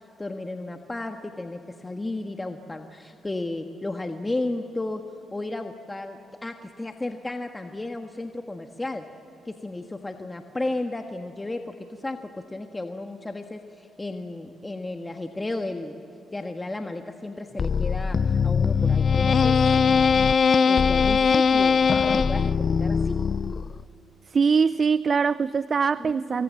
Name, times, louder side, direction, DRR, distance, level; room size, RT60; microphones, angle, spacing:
voice 1, 0.2-5.0 5.3-9.0 9.4-16.0 16.3-19.6 20.6-23.2 26.0-26.4, left 2 dB, 20° left, 1.5 m, -33 dB
sound 1, 17.6-23.8, left 6 dB, 55° left, 0.5 m, -21 dB
voice 2, 24.3-26.4, right 5 dB, 50° right, 0.5 m, -22 dB
25.5 x 22.0 x 7.4 m
supercardioid pair, 60°, 0 cm